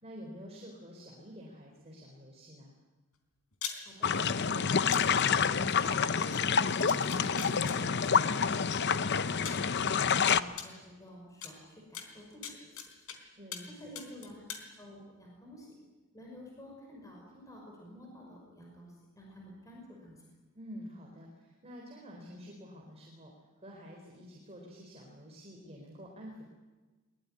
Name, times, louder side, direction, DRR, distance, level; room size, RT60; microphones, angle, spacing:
voice 1, 0.0-2.8 13.4-13.7 20.5-26.5, equal, 30° right, -1 dB, 4.2 m, -48 dB
sound 1, 3.5-3.8 4.9-5.0 6.3-6.4 6.9-7.8 8.8-8.9 9.4-9.7 10.6-10.7 11.4-11.5 11.9-13.2 13.5-13.7 13.9-14.6, left 8 dB, 75° left, 3.6 m, -40 dB
voice 2, 3.8-9.7 10.1-13.2 13.7-15.7 16.1-20.2, left 1 dB, 15° left, -1 dB, 5.7 m, -51 dB
sound 2, 4.0-10.4, left 6 dB, 50° left, 0.7 m, -28 dB
22.5 x 21.5 x 9.9 m, 1.2 s
head